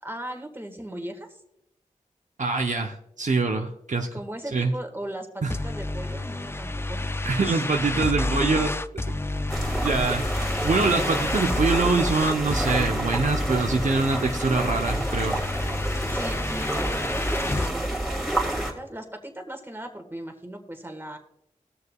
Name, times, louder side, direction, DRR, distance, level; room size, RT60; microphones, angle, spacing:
voice 1, 0.0-1.4 4.1-7.7 16.1-21.2, right 1 dB, 15° right, 4 dB, 1.7 m, -38 dB
voice 2, 2.4-4.1 4.5-4.7 5.4-5.5 7.2-8.7 9.1-9.5 9.8-10.2 10.6-15.4, right 3 dB, 65° right, 3 dB, 0.8 m, -24 dB
sound 1, 5.5-17.7, left 2 dB, 20° left, 0.4 m, -30 dB
sound 2, 9.5-18.7, right 1 dB, ahead, 2.5 m, -29 dB
20.5 x 6.8 x 2.4 m, 0.79 s
cardioid pair, 45°, 14 cm